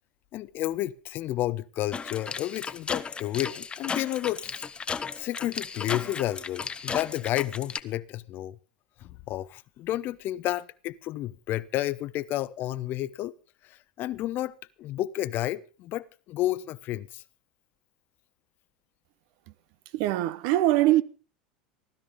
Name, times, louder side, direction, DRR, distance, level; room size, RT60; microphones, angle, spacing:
voice 1, 0.3-4.5 5.2-8.6 9.0-13.3 13.6-17.2, left 14 dB, 50° left, 0.8 m, -31 dB
sound 1, 1.9-7.8, left 5 dB, 25° left, 0.9 m, -35 dB
voice 2, 19.9-21.0, right 15 dB, 60° right, 0.9 m, -22 dB
16.0 x 12.5 x 5.2 m
hypercardioid pair, 85°, 5 cm